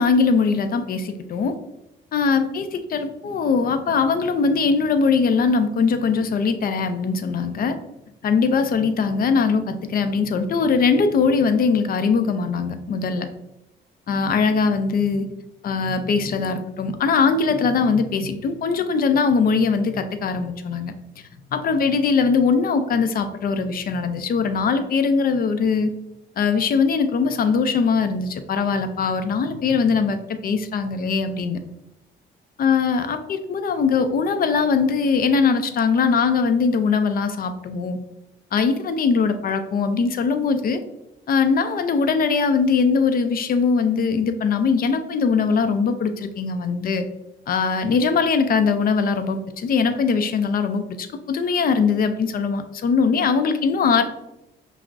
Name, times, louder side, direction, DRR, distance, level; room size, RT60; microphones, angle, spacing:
voice 1, 0.0-1.5 2.1-7.8 8.2-13.3 14.1-15.3 15.6-20.9 21.5-25.9 26.4-31.6 32.6-38.0 38.5-40.8 41.3-47.1 47.5-54.0, left 5 dB, 50° left, 9 dB, 0.4 m, -21 dB
5.7 x 2.0 x 2.5 m, 0.91 s
cardioid pair, 90°, 20 cm